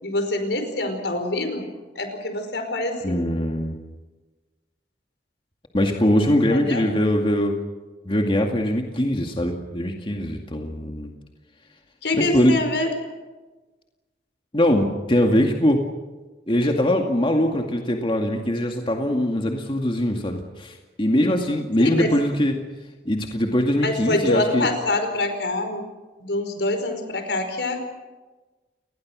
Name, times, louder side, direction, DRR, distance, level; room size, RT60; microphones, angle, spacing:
voice 1, 0.0-1.7 1.9-3.3 6.5-6.8 12.0-12.9 21.8-22.1 23.8-25.8 26.2-27.8, left 2 dB, 75° left, 7 dB, 5.0 m, -25 dB
voice 2, 3.0-3.8 5.7-7.6 8.0-11.1 12.2-12.6 14.5-15.8 16.5-22.5 23.1-24.7, left 1 dB, 30° left, 2 dB, 2.2 m, -22 dB
30.0 x 20.0 x 6.4 m, 1.2 s
head